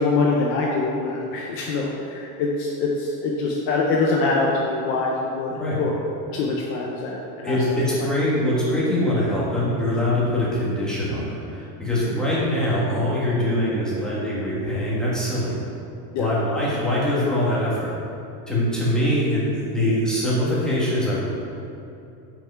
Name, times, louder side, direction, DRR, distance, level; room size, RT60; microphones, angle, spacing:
voice 1, 0.0-5.9 6.3-7.6 12.1-12.2 16.1-16.3, left 3 dB, 30° left, -2 dB, 0.3 m, -24 dB
voice 2, 7.4-15.5 16.2-17.9 18.5-21.2, left 1 dB, ahead, -9 dB, 1.5 m, -23 dB
7.3 x 5.8 x 5.5 m, 2.7 s
cardioid pair, 170°, 49 cm